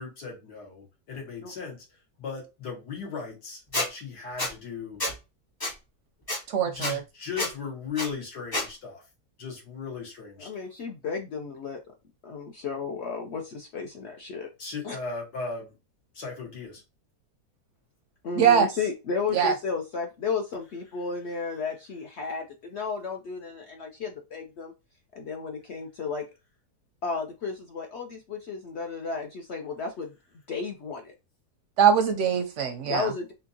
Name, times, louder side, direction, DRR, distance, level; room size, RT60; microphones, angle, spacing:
voice 1, 0.0-1.8 2.2-5.0 6.6-9.0 9.4-10.5 14.6-15.8 16.1-16.8, left 5 dB, 80° left, 2.2 m, -37 dB
Squeak, 3.7-3.9 4.4-4.5 5.0-5.1 5.6-5.7 6.3-6.4 6.8-6.9 7.4-7.5 8.0-8.1 8.5-8.7, left 1 dB, 25° left, 0.5 m, -28 dB
voice 2, 6.5-7.0 18.4-18.7 19.3-19.5 31.8-33.1, right 8 dB, 65° right, 0.7 m, -22 dB
voice 3, 10.4-11.8 12.2-14.5 14.8-15.0 18.2-24.7 25.1-26.2 27.0-30.1 30.5-31.1 32.9-33.3, left 5 dB, 65° left, 0.6 m, -33 dB
4.3 x 2.8 x 2.6 m
omnidirectional pair, 1.7 m